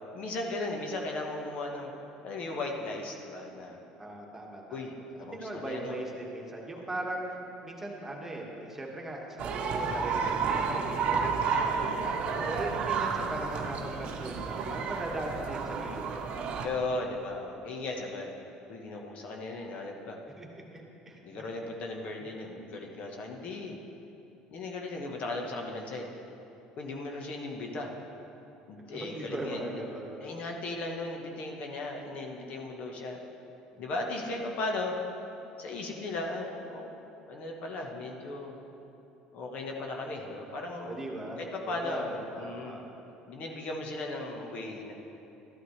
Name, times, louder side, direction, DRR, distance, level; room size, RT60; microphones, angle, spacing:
voice 1, 0.1-1.9 2.2-3.8 4.7-4.9 5.2-6.0 6.8-6.9 11.5-12.6 16.6-18.3 18.7-20.2 21.2-23.7 24.5-26.1 26.8-27.9 28.7-29.8 30.2-33.2 33.8-35.0 35.6-36.9 37.3-38.6 39.3-41.1 41.4-42.8 43.3-44.9, left 2 dB, 55° left, 1 dB, 1.2 m, -37 dB
voice 2, 4.0-4.8 5.2-16.7 20.4-21.4 22.2-22.3 28.9-30.3 33.7-33.8 40.8-41.4 41.6-42.9, right 1 dB, 15° right, -1 dB, 1.6 m, -39 dB
sound 1, 9.4-16.7, right 5 dB, 55° right, 0.8 m, -31 dB
13.5 x 9.1 x 3.2 m, 2.9 s
supercardioid pair, 95°, 3 cm